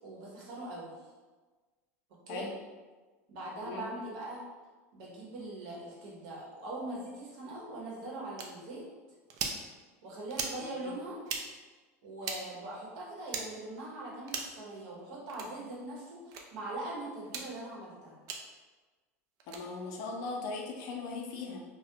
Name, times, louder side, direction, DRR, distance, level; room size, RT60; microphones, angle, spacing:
voice 1, 0.0-1.0 2.3-2.5 3.3-4.4 4.9-8.8 10.0-11.2 12.0-18.2, right 2 dB, 65° right, -4 dB, 0.9 m, -41 dB
sound 1, 8.4-8.5 9.3-9.6 10.3-10.6 11.2-11.4 12.2-12.4 13.3-13.5 14.3-14.6 15.3-15.5 16.3-16.4 17.2-17.5 18.3-18.4 19.4-19.6, right 5 dB, 50° right, 0.4 m, -37 dB
voice 2, 19.5-21.6, left 3 dB, 60° left, 1 dB, 0.5 m, -38 dB
2.3 x 2.1 x 2.8 m, 1.3 s
hypercardioid pair, 100°, 8 cm